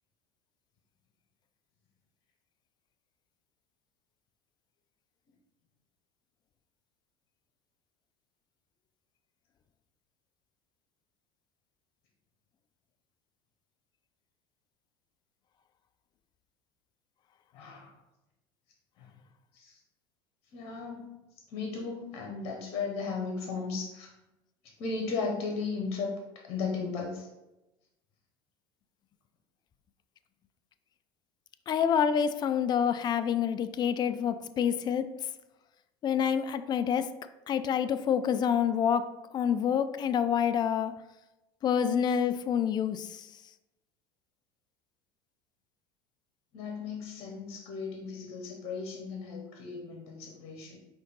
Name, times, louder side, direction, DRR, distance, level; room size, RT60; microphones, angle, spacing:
voice 1, 17.5-17.9 19.0-19.1 19.5-19.8 20.5-21.1 21.5-24.1 24.8-26.1 26.4-27.3 46.5-50.8, left 4 dB, 50° left, 1.0 m, -36 dB
voice 2, 31.7-35.3 36.0-37.2 37.5-40.9 41.6-43.3, left 8 dB, 30° left, 0.3 m, -27 dB
5.0 x 2.6 x 3.9 m
hypercardioid pair, 80°, 14 cm